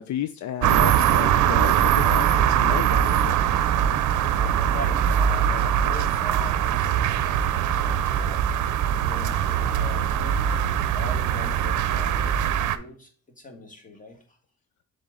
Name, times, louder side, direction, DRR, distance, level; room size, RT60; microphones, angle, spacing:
voice 1, 0.0-3.4, left 10 dB, 70° left, 11 dB, 0.5 m, -32 dB
sound 1, 0.6-12.8, right 9 dB, 75° right, 0.6 m, -22 dB
voice 2, 4.0-8.5 9.0-10.7 10.9-14.4, left 1 dB, 25° left, 3 dB, 1.7 m, -41 dB
7.1 x 3.9 x 3.8 m, 0.42 s
cardioid pair, 90°, 30 cm